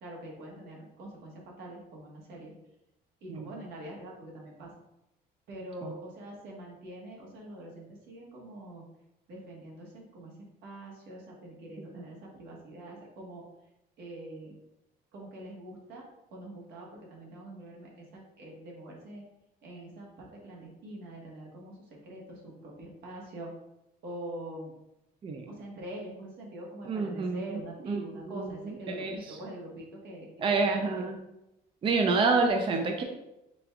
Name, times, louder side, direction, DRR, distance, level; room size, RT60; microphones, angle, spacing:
voice 1, 0.0-2.5 3.2-4.7 5.5-8.8 9.3-13.4 14.0-14.6 15.1-16.0 16.3-19.3 19.6-23.5 24.0-24.8 25.5-30.3 30.6-31.1, right 1 dB, 80° right, -2 dB, 1.3 m, -44 dB
voice 2, 26.9-27.6 27.8-28.0 28.3-29.1 30.4-31.2 31.8-33.0, right 4 dB, 30° right, 4 dB, 0.4 m, -28 dB
5.0 x 3.4 x 2.3 m, 0.91 s
cardioid pair, 110°, 17 cm